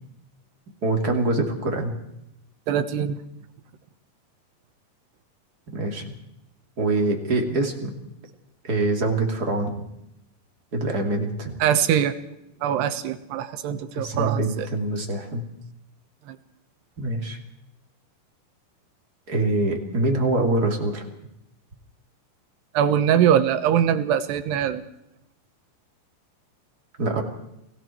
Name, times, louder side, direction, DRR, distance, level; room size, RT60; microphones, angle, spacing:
voice 1, 0.8-1.9 5.7-6.1 6.8-7.9 8.6-9.8 10.7-11.6 13.9-15.4 17.0-17.4 19.3-21.0 27.0-27.2, right 2 dB, 25° right, 2 dB, 2.7 m, -24 dB
voice 2, 2.7-3.2 11.6-12.1 12.6-14.7 16.3-16.4 22.7-24.8, right 9 dB, 80° right, 10 dB, 3.3 m, -22 dB
29.0 x 19.5 x 4.6 m, 0.82 s
omnidirectional pair, 4.9 m